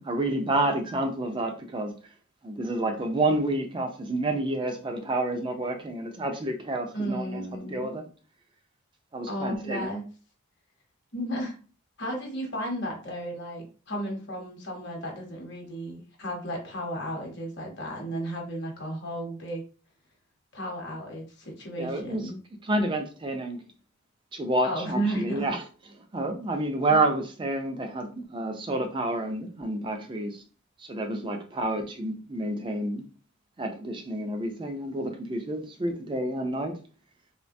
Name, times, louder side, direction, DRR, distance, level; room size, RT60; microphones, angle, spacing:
voice 1, 0.0-1.9 2.4-8.0 9.1-9.9 21.8-22.3 22.6-23.6 24.3-25.6 26.1-30.4 30.8-33.0 33.6-36.8, right 2 dB, 20° right, 0.3 m, -29 dB
voice 2, 6.9-7.9 9.3-10.0 11.1-11.6 12.0-19.6 20.5-22.4 24.6-25.5 26.9-27.0, right 1 dB, 50° left, 0.9 m, -33 dB
3.1 x 2.1 x 2.5 m
head